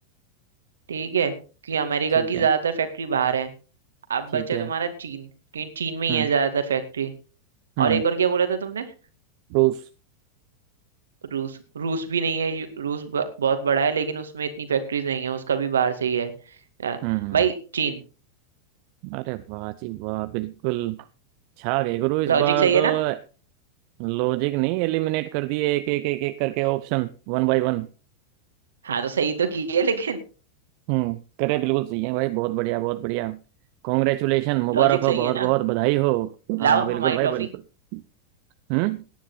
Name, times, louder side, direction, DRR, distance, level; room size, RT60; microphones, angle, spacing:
voice 1, 0.9-1.3 1.6-3.5 4.1-5.3 5.5-7.1 7.8-8.9 11.3-16.3 16.8-17.0 17.3-18.0 22.3-23.0 28.8-30.2 34.7-35.5 36.6-37.5, right 6 dB, 70° right, 2.1 m, -24 dB
voice 2, 2.2-2.5 4.3-4.7 6.1-6.3 7.8-8.0 9.5-9.9 17.0-17.4 19.0-21.0 21.6-23.2 24.0-27.9 30.9-33.4 33.8-37.5 37.9-38.0 38.7-39.0, right 20 dB, 45° right, 0.6 m, -25 dB
17.5 x 10.0 x 4.1 m
figure-of-eight pair, 90°, 0 cm